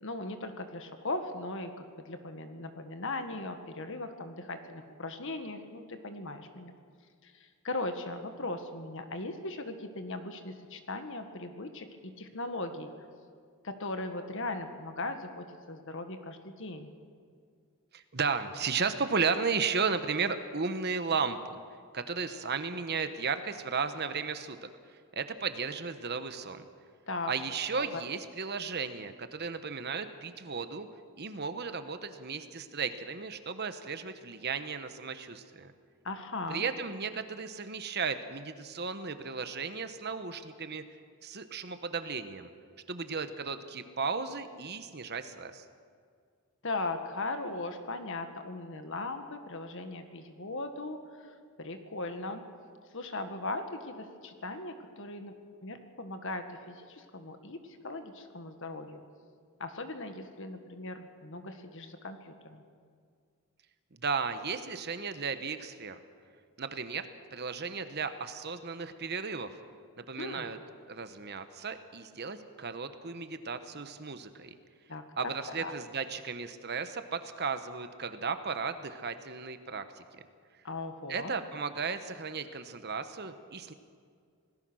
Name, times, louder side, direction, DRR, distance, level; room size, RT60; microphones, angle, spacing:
voice 1, 0.0-6.7 7.2-11.9 12.2-12.9 13.6-16.9 27.1-27.3 27.7-28.0 36.0-36.7 46.6-52.4 52.9-55.3 55.6-59.0 59.6-62.6 70.2-70.5 74.9-75.0 75.6-75.7 80.6-81.3, left 2 dB, 60° left, 7 dB, 1.7 m, -38 dB
voice 2, 17.9-21.6 21.9-24.7 25.1-26.6 27.3-30.9 31.2-35.7 36.5-40.8 41.2-42.5 42.9-45.6 63.9-66.0 66.6-69.6 70.0-70.6 70.9-74.5 75.2-80.0 81.1-83.7, right 5 dB, 45° right, 9 dB, 1.1 m, -35 dB
26.5 x 18.5 x 6.3 m, 2.2 s
head